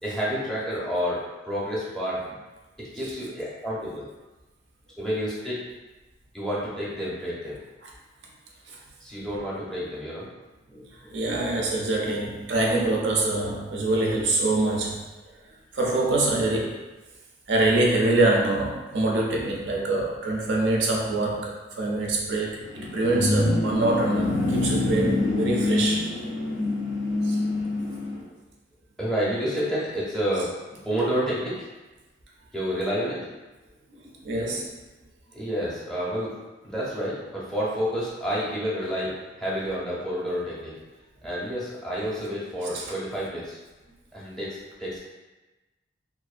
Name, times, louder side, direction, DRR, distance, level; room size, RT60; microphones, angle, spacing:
voice 1, 0.0-2.2 2.9-4.0 5.0-5.6 6.3-7.6 9.0-10.3 10.7-11.2 28.2-28.3 29.0-30.5 30.8-31.7 32.5-33.4 35.3-36.3 36.6-40.7 41.2-43.6 44.1-45.0, equal, 5° left, -8 dB, 0.6 m, -29 dB
voice 2, 11.1-15.0 15.7-16.8 17.5-26.1 27.2-27.4 33.9-34.8 42.7-42.9, right 2 dB, 70° right, -1 dB, 0.4 m, -25 dB
sound 1, 22.6-28.2, left 2 dB, 75° left, 0.4 m, -25 dB
2.5 x 2.1 x 2.4 m, 1.1 s
head